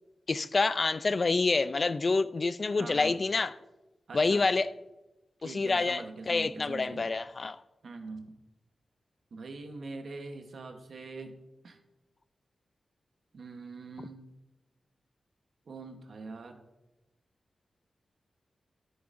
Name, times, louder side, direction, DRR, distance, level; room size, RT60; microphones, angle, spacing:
voice 1, 0.3-3.5 4.1-4.7 5.4-7.6, left 3 dB, 45° left, 0.3 m, -27 dB
voice 2, 2.8-3.2 4.1-4.5 5.4-7.1 7.8-8.4 9.3-11.3 11.6-11.8 13.3-14.2 15.7-16.6, right 3 dB, 70° right, 1.0 m, -43 dB
9.6 x 9.4 x 2.6 m
cardioid pair, 65°, 0 cm